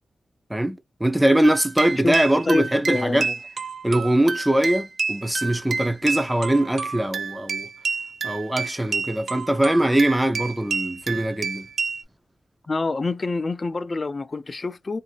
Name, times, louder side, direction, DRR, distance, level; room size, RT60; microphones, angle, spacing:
voice 1, 0.5-3.3 3.8-7.7 8.2-11.7, right 1 dB, 10° right, 0.6 m, -22 dB
sound 1, 1.4-12.0, right 4 dB, 70° right, 0.5 m, -29 dB
voice 2, 1.9-3.3 12.7-15.0, left 3 dB, 35° left, 0.4 m, -27 dB
2.6 x 2.6 x 2.9 m
wide cardioid pair, 85°, 0 cm